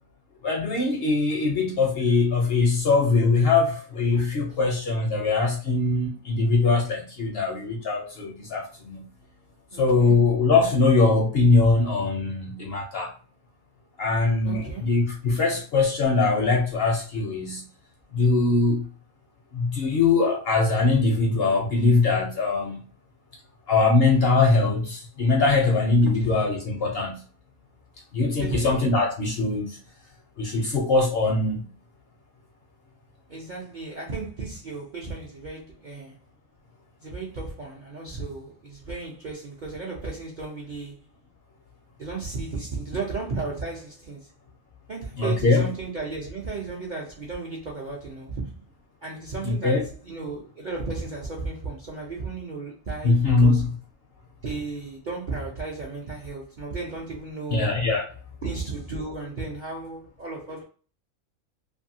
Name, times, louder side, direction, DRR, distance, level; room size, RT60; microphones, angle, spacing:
voice 1, 0.4-9.0 9.7-13.1 14.0-17.6 18.1-18.8 19.5-22.8 23.7-27.2 28.1-29.8 30.4-31.7 45.2-45.7 49.4-49.8 53.0-53.6 57.5-58.0, left 3 dB, 60° left, 0.6 m, -22 dB
voice 2, 9.7-10.2 14.4-14.9 26.2-26.4 28.4-28.9 33.3-36.1 37.0-40.9 42.0-44.2 44.9-48.5 49.0-49.8 50.1-53.6 54.4-57.7 58.4-60.6, right 3 dB, 55° right, 0.5 m, -34 dB
2.6 x 2.6 x 2.6 m
omnidirectional pair, 1.4 m